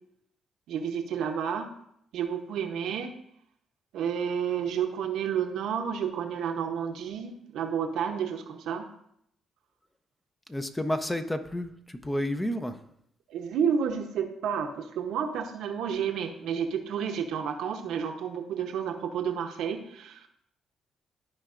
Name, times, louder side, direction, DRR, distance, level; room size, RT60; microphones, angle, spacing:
voice 1, 0.7-1.7 2.1-3.1 3.9-8.8 13.3-20.3, right 7 dB, 80° right, 4 dB, 0.8 m, -30 dB
voice 2, 10.5-12.8, left 1 dB, 10° left, 8 dB, 0.6 m, -31 dB
13.0 x 4.5 x 2.5 m, 0.73 s
cardioid pair, 90°, 0 cm